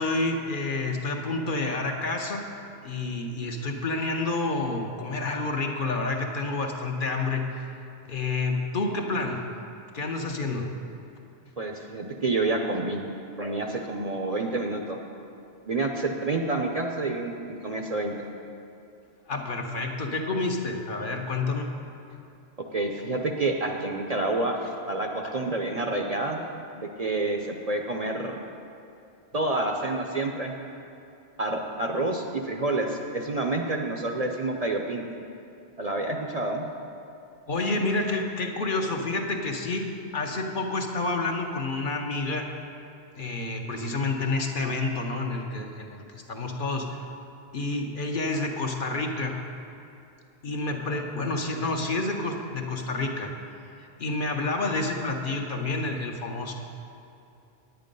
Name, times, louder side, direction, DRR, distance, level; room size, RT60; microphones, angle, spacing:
voice 1, 0.0-2.5 2.8-7.5 8.1-9.4 9.9-10.7 19.3-21.7 25.2-25.4 37.5-39.9 40.1-42.5 43.2-47.0 47.5-49.4 50.4-53.3 54.0-56.5, left 3 dB, 50° left, 2 dB, 1.0 m, -29 dB
voice 2, 11.6-13.0 13.4-15.0 15.7-17.3 17.6-18.3 22.7-24.6 24.9-26.5 26.7-28.4 29.3-30.6 31.4-35.0 35.8-36.6, right 2 dB, 40° right, 2 dB, 0.6 m, -28 dB
9.7 x 9.1 x 5.3 m, 2.7 s
omnidirectional pair, 1.1 m